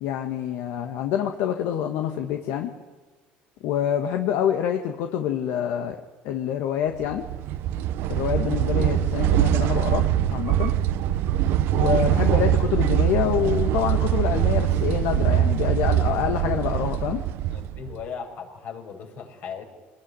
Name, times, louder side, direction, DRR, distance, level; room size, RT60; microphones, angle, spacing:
voice 1, 0.0-2.7 3.6-6.0 6.2-7.3 8.1-10.1 10.3-10.8 11.7-17.2, left 9 dB, 75° left, 4 dB, 1.7 m, -26 dB
sound 1, 7.0-18.0, right 12 dB, 70° right, 1.0 m, -23 dB
voice 2, 17.5-19.7, left 6 dB, 55° left, 3 dB, 5.9 m, -37 dB
24.5 x 19.5 x 9.8 m, 1.3 s
cardioid pair, 115°, 4 cm